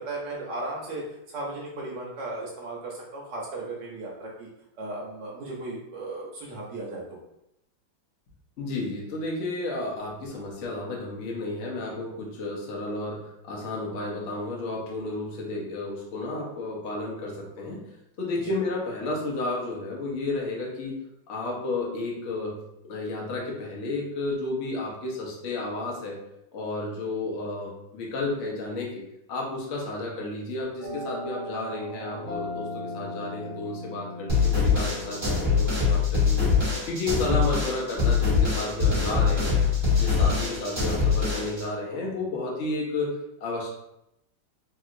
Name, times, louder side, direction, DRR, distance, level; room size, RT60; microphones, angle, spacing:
voice 1, 0.0-4.5 4.8-7.2 18.4-18.5, right 2 dB, 65° right, -3 dB, 1.2 m, -36 dB
voice 2, 8.6-17.9 18.2-21.0 21.3-26.2 26.5-29.0 29.3-39.6 39.9-43.7, left 2 dB, 65° left, -2 dB, 0.7 m, -32 dB
sound 1, 30.8-36.0, left 1 dB, 30° left, 1.2 m, -37 dB
sound 2, 34.3-41.6, left 5 dB, 25° right, 1.3 m, -23 dB
3.2 x 2.8 x 2.4 m, 0.85 s
omnidirectional pair, 2.2 m